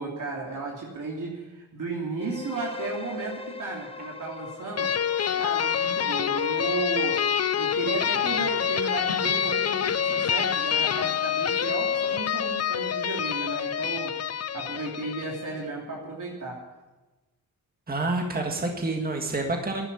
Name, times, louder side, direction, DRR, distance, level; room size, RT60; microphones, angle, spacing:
voice 1, 0.0-4.9 5.4-7.2 7.5-14.2 14.5-16.6, right 3 dB, 60° right, -3 dB, 3.0 m, -34 dB
sound 1, 2.2-10.0, left 4 dB, 15° left, 0.9 m, -43 dB
sound 2, 4.8-15.5, left 8 dB, 45° left, 0.6 m, -26 dB
voice 2, 17.9-19.9, right 2 dB, 25° right, 2 dB, 1.8 m, -28 dB
11.5 x 10.5 x 9.9 m, 1.2 s
cardioid pair, 90°, 36 cm